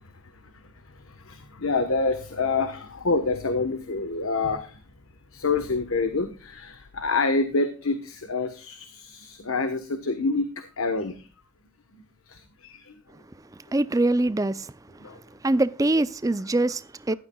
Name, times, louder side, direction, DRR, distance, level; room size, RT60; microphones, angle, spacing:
voice 1, 1.0-4.8 5.3-11.3 12.3-12.9 15.0-15.2 15.4-15.5 17.1-17.2, left 3 dB, 85° left, 1.2 m, -27 dB
voice 2, 13.7-14.7 15.4-17.1, right 2 dB, 15° right, 0.4 m, -23 dB
15.0 x 12.0 x 2.3 m
head